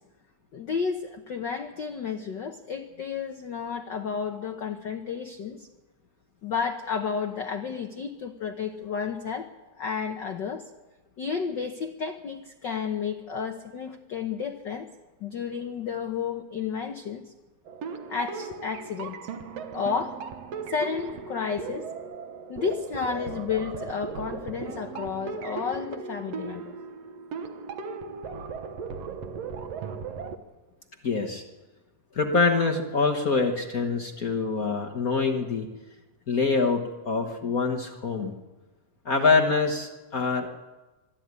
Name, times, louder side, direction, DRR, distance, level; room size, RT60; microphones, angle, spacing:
voice 1, 0.5-5.7 6.4-9.5 9.8-10.6 11.2-14.9 15.2-17.3 18.1-19.2 19.7-20.2 20.7-21.9 22.5-26.7, left 6 dB, 85° left, 6 dB, 0.9 m, -32 dB
sound 1, 17.7-30.4, right 5 dB, 60° right, 2.1 m, -37 dB
voice 2, 31.0-31.4 32.1-35.7 36.3-38.3 39.0-40.5, left 4 dB, 60° left, 2 dB, 0.9 m, -25 dB
24.5 x 13.5 x 9.7 m, 1.2 s
omnidirectional pair, 3.6 m